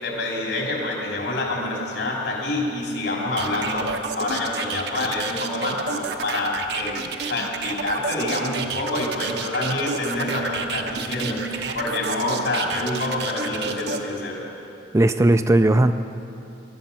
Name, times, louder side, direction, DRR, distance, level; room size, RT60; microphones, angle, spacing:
voice 1, 0.0-3.9 4.2-11.4 11.7-14.4, left 2 dB, 75° left, -2 dB, 3.6 m, -27 dB
sound 1, 3.4-14.0, right 5 dB, 65° right, 0.9 m, -30 dB
voice 2, 14.9-15.9, right 1 dB, 15° right, 9 dB, 0.4 m, -18 dB
19.5 x 12.0 x 5.6 m, 2.8 s
head